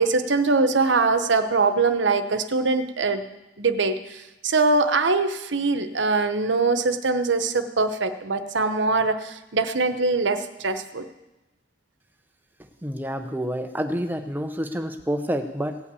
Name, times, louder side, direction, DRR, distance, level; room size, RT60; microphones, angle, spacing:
voice 1, 0.0-3.2 3.6-11.1, right 3 dB, 80° right, 9 dB, 0.9 m, -22 dB
voice 2, 12.8-15.8, equal, 10° right, 7 dB, 0.6 m, -28 dB
17.0 x 5.7 x 8.3 m, 1.0 s
head